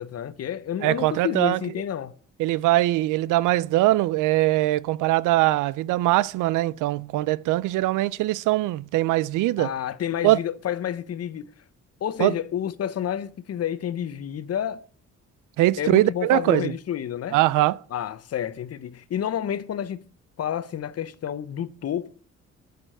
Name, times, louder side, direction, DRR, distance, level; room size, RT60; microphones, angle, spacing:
voice 1, 0.0-2.1 9.6-11.5 12.0-14.8 15.8-17.4 17.9-20.0 20.4-22.1, left 10 dB, 55° left, 0.9 m, -29 dB
voice 2, 0.8-1.6 2.4-9.7 10.2-10.4 12.2-12.3 15.6-16.7 17.3-17.8, right 17 dB, 90° right, 0.5 m, -22 dB
9.8 x 6.8 x 7.7 m
cardioid pair, 90°, 30 cm